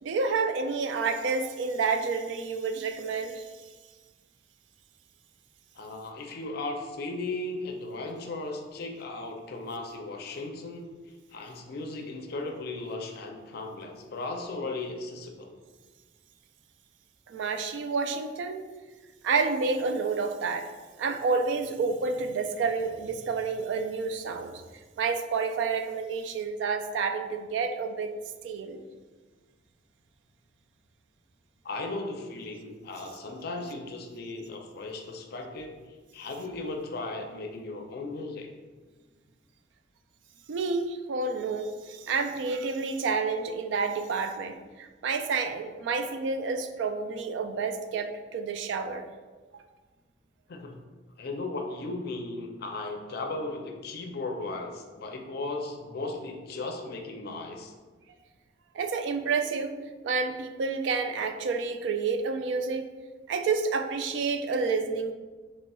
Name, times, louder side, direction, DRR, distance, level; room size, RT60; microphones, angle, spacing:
voice 1, 0.0-3.4 17.3-18.7 19.2-20.7 21.0-24.6 25.0-28.1 28.4-28.8 40.5-49.0 49.5-49.6 58.7-59.7 60.0-62.8 63.3-65.1, right 4 dB, 70° right, 7 dB, 0.3 m, -29 dB
voice 2, 5.7-10.9 11.3-15.6 31.6-38.5 50.5-50.8 51.2-57.7, left 2 dB, 55° left, 3 dB, 0.4 m, -36 dB
4.1 x 3.0 x 2.2 m, 1.3 s
head